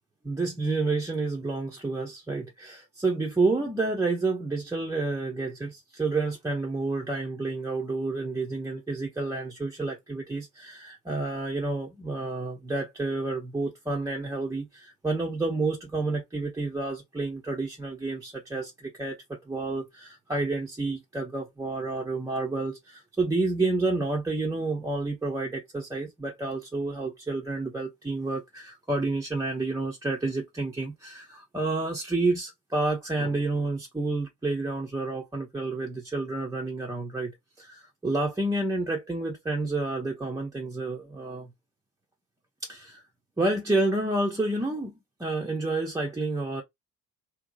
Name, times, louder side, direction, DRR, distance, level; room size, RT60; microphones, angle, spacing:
voice 1, 0.2-37.3 37.6-41.5 42.6-43.0 43.4-46.6, right 2 dB, 5° right, 0.6 m, -29 dB
2.6 x 2.2 x 2.4 m
figure-of-eight pair, 50°, 48 cm